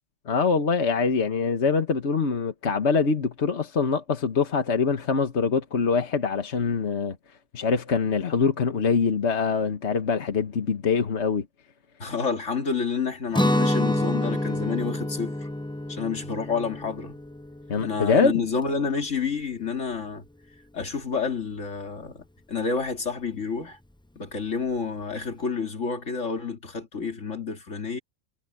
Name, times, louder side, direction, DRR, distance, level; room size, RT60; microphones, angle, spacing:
voice 1, 0.3-7.2 7.5-11.4 17.7-18.4, left 5 dB, 65° left, 1.6 m, -24 dB
voice 2, 12.0-15.5 15.9-17.1 17.8-20.2 20.7-23.8 24.2-28.0, left 5 dB, 80° left, 2.7 m, -29 dB
Guitar, 13.3-19.2, left 1 dB, 5° left, 0.5 m, -28 dB
omnidirectional pair, 1.3 m